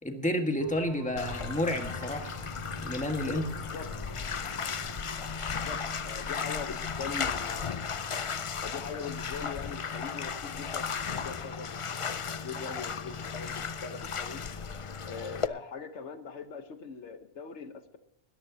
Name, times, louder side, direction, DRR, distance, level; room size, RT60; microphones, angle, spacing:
voice 1, 0.0-2.3 2.8-3.5, left 1 dB, 5° left, 4 dB, 1.5 m, -30 dB
sound 1, 0.6-11.1, right 1 dB, 35° right, 3.4 m, -49 dB
Bathtub (filling or washing), 1.2-15.5, left 6 dB, 50° left, 0.4 m, -35 dB
voice 2, 3.2-3.9 5.7-7.9 8.6-12.1 12.4-14.4 15.0-18.0, left 5 dB, 70° left, 9 dB, 1.3 m, -42 dB
20.5 x 14.0 x 2.8 m, 0.77 s
omnidirectional pair, 1.2 m